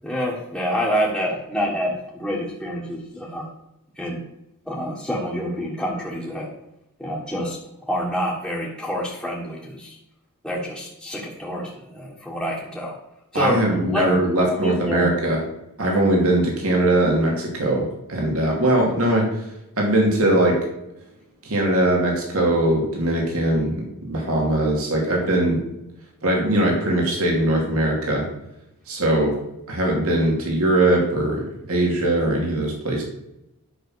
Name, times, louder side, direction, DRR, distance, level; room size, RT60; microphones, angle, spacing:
voice 1, 0.0-3.5 4.0-4.2 4.7-6.5 7.0-7.6 7.9-10.0 10.4-13.0 13.3-15.1, equal, ahead, -6 dB, 1.6 m, -27 dB
voice 2, 13.3-15.4 15.8-19.3 19.8-20.6 21.4-25.6 26.2-28.3 28.9-29.3 29.7-33.0, right 1 dB, 70° right, -1 dB, 2.7 m, -21 dB
10.0 x 6.1 x 6.4 m, 0.88 s
head